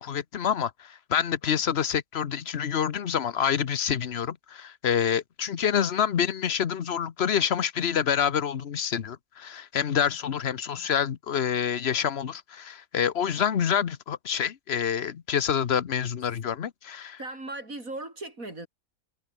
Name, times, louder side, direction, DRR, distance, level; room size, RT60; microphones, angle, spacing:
voice 1, 0.0-17.2, left 8 dB, 50° left, 1.1 m, -27 dB
voice 2, 17.2-18.7, right 2 dB, 65° right, 7.0 m, -37 dB
omnidirectional pair, 1.5 m